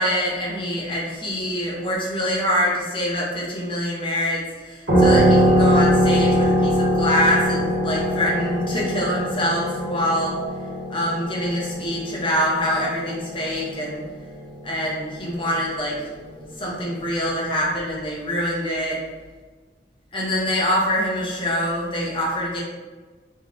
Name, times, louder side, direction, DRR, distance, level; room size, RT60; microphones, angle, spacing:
voice 1, 0.0-10.4 10.9-14.0 14.6-16.1 16.6-19.0 20.1-22.6, equal, 30° left, -4 dB, 0.8 m, -24 dB
sound 1, 4.9-14.1, equal, 80° right, 1.2 m, -21 dB
3.6 x 2.9 x 2.5 m, 1.3 s
head